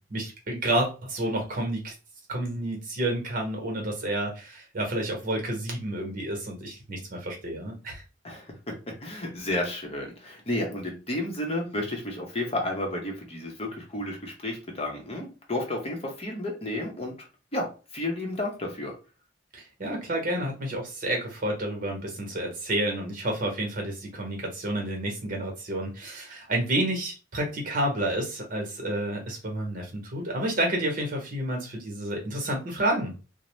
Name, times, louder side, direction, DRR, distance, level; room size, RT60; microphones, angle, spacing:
voice 1, 0.0-1.9 2.3-8.0 19.5-33.2, right 1 dB, 50° right, 1 dB, 1.0 m, -30 dB
voice 2, 8.2-17.3 17.5-18.9, left 1 dB, 35° left, 1 dB, 0.7 m, -32 dB
2.6 x 2.0 x 3.1 m, 0.32 s
head